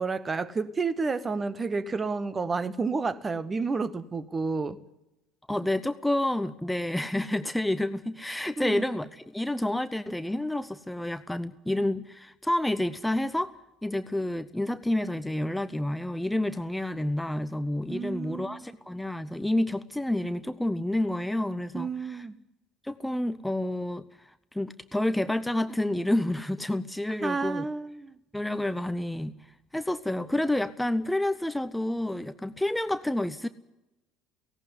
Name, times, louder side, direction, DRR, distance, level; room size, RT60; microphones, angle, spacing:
voice 1, 0.0-4.8 8.6-8.8 17.9-18.7 21.7-22.3 27.2-28.2, right 4 dB, 25° right, 1.1 m, -30 dB
voice 2, 5.5-13.5 13.8-22.3 22.8-27.7 28.3-29.4 29.7-33.5, left 1 dB, 5° left, 0.7 m, -29 dB
17.5 x 17.0 x 9.7 m
figure-of-eight pair, 60°, 0 cm